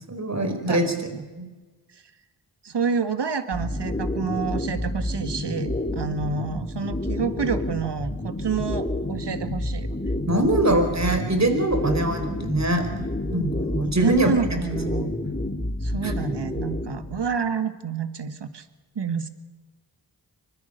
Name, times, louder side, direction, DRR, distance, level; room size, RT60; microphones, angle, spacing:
voice 1, 0.1-1.1 1.4-1.5 10.3-12.9 13.3-14.3 16.0-16.1, right 1 dB, 35° right, 7 dB, 4.5 m, -23 dB
voice 2, 0.7-1.2 2.6-10.1 13.8-15.1 15.8-18.6 19.0-19.3, right 5 dB, 65° right, 11 dB, 2.0 m, -28 dB
sound 1, 3.5-17.3, left 1 dB, 20° left, 2.7 m, -29 dB
25.0 x 20.5 x 6.8 m, 1.3 s
cardioid pair, 45°, 45 cm